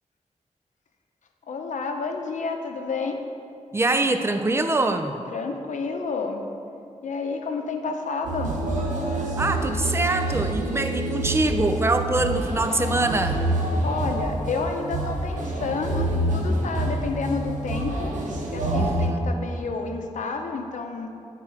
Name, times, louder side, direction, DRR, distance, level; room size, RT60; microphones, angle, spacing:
voice 1, 1.5-3.3 5.3-6.4 7.0-8.6 13.8-18.2 18.5-21.1, left 4 dB, 80° left, 4 dB, 0.7 m, -30 dB
voice 2, 3.7-5.2 9.4-13.4 18.8-19.3, right 2 dB, 20° right, 7 dB, 0.4 m, -24 dB
sound 1, 8.2-19.1, right 1 dB, 85° right, 1.0 m, -27 dB
7.6 x 4.4 x 5.8 m, 2.5 s
wide cardioid pair, 125°, 13 cm